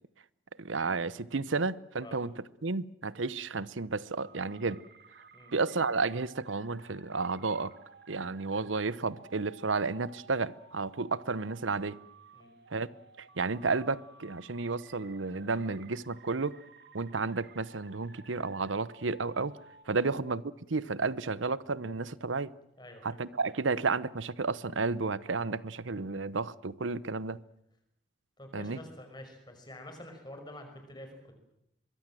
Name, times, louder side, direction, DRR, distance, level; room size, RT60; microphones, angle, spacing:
voice 1, 0.6-2.3 2.6-4.8 5.5-7.7 8.1-12.0 12.7-12.9 13.2-16.6 16.9-19.5 19.9-20.4 20.7-22.5 23.0-27.4 28.5-28.8, right 4 dB, 85° right, 0.9 m, -32 dB
sound 1, 4.2-19.8, right 4 dB, 60° right, 1.9 m, -56 dB
voice 2, 22.8-23.2 28.4-31.3, left 1 dB, 20° left, 5.6 m, -48 dB
24.0 x 22.5 x 7.7 m
head